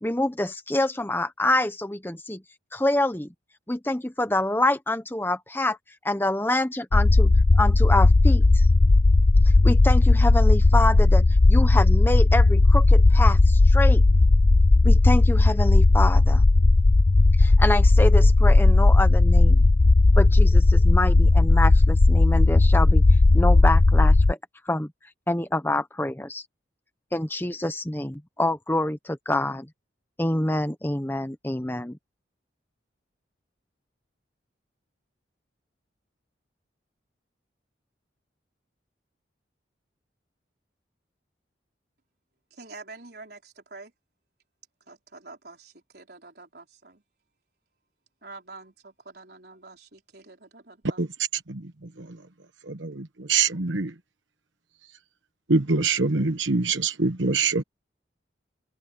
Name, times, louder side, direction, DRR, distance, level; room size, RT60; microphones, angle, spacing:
voice 1, 0.0-2.4 2.7-3.3 3.7-5.8 6.0-8.7 9.6-14.0 14.8-16.4 17.4-19.6 20.2-23.0 23.3-24.4 24.7-24.9 25.3-26.4 27.1-29.7 30.2-32.0, left 1 dB, 10° left, 0.9 m, -26 dB
sound 1, 6.9-24.3, left 2 dB, 45° left, 0.6 m, -16 dB
voice 2, 42.5-43.9 44.9-47.0 48.2-51.0, right 3 dB, 55° right, 4.6 m, -46 dB
voice 3, 52.7-53.9 55.5-57.6, right 4 dB, 85° right, 1.2 m, -24 dB
head